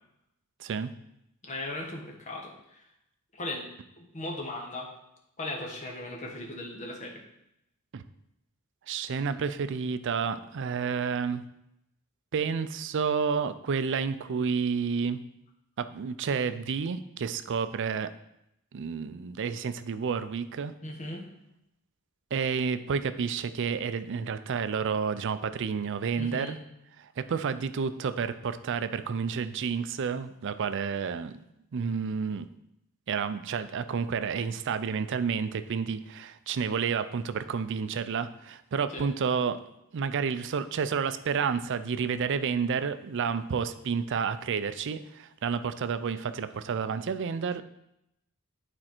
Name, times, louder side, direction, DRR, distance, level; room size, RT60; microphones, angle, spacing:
voice 1, 0.6-0.9 7.9-8.0 8.9-11.4 12.3-15.2 15.8-18.1 18.7-20.7 22.3-26.6 27.0-31.3 31.7-32.5 33.1-39.6 39.9-47.6, right 6 dB, 55° right, 12 dB, 0.4 m, -30 dB
voice 2, 1.5-2.8 3.3-3.7 4.0-4.9 5.4-7.1 20.8-21.3 26.2-26.5 38.9-39.1, left 1 dB, 35° left, 0 dB, 1.3 m, -37 dB
8.8 x 4.4 x 4.4 m, 0.81 s
head